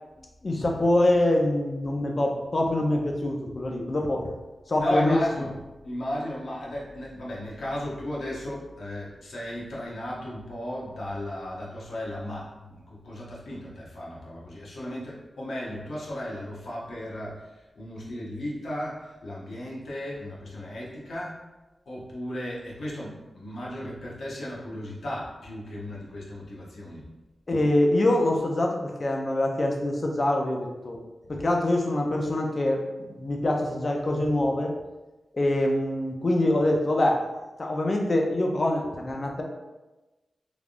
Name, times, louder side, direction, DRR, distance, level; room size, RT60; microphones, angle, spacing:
voice 1, 0.4-4.3 4.7-5.2 27.5-31.0 31.3-34.7 35.3-37.2 37.6-39.4, left 1 dB, 40° left, 1 dB, 0.4 m, -24 dB
voice 2, 4.7-21.4 21.9-27.1, left 1 dB, 85° left, -6 dB, 0.8 m, -35 dB
3.3 x 2.3 x 2.5 m, 1.1 s
wide cardioid pair, 115°, 0 cm